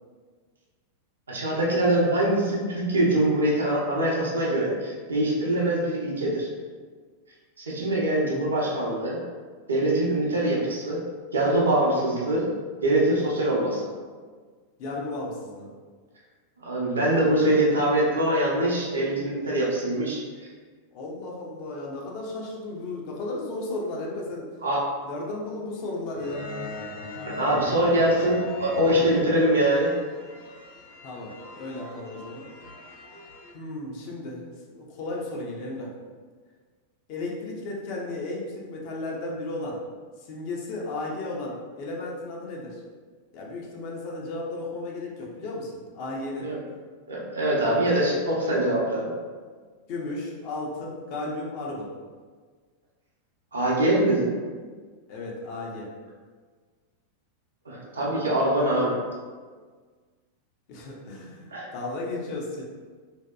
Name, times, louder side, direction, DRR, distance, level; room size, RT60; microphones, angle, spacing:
voice 1, 1.3-6.5 7.6-9.2 9.7-11.0 11.3-12.5 12.8-13.9 16.6-20.2 24.6-24.8 27.3-29.9 46.4-46.6 47.1-49.1 53.5-54.3 57.7-59.0 61.5-61.7, right 1 dB, 70° right, -4 dB, 0.6 m, -23 dB
voice 2, 14.8-15.7 20.9-24.5 25.0-26.5 31.0-32.5 33.5-35.9 37.1-39.8 40.2-42.8 43.3-46.5 47.6-48.0 49.9-51.9 55.1-55.9 60.7-62.6, left 2 dB, 45° left, -2 dB, 0.5 m, -34 dB
sound 1, 26.1-33.5, left 1 dB, 85° left, 1.0 m, -40 dB
2.7 x 2.2 x 2.2 m, 1.5 s
figure-of-eight pair, 90°, 0 cm